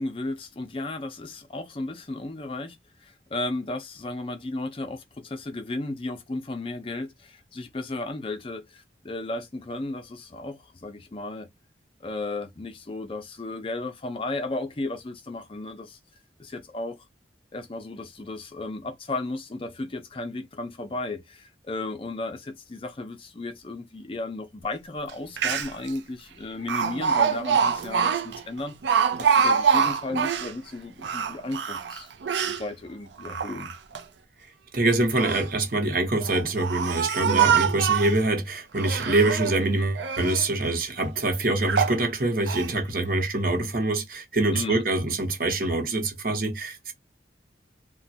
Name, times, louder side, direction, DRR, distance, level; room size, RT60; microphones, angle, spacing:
voice 1, 0.0-2.8 3.0-11.5 12.0-16.0 16.4-17.0 17.5-28.8 29.2-32.1 32.4-33.7 37.2-37.5 44.5-44.8, left 2 dB, 30° left, 0.4 m, -34 dB
Speech, 25.1-25.2 25.4-25.9 26.7-30.5 31.0-32.6 33.2-34.0 34.9-35.5 36.2-38.2 38.8-39.6 40.0-40.5 41.0-41.1 41.7-42.0 42.5-42.7, right 7 dB, 85° right, 0.5 m, -25 dB
voice 2, 34.7-46.9, right 2 dB, 50° right, 0.9 m, -25 dB
3.0 x 2.1 x 2.7 m
head